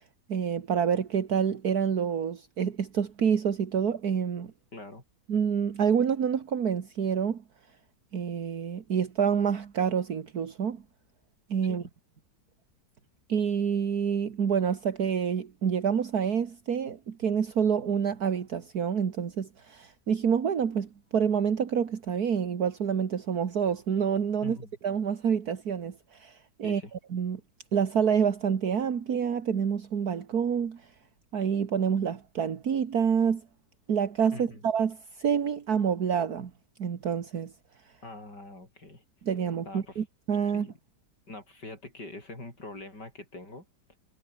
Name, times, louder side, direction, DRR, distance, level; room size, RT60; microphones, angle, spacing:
voice 1, 0.3-4.5 5.3-7.4 8.1-10.8 11.5-11.8 13.3-24.6 24.8-26.8 27.1-27.4 27.7-30.8 31.3-33.4 33.9-36.5 36.8-37.5 39.2-40.7, right 7 dB, 65° right, 2.1 m, -27 dB
voice 2, 4.7-5.0 11.6-11.9 24.4-24.7 26.6-26.9 34.3-34.6 38.0-39.0 39.6-40.0 40.5-40.8 41.3-43.7, left 2 dB, 75° left, 8.4 m, -43 dB
omnidirectional pair, 1.8 m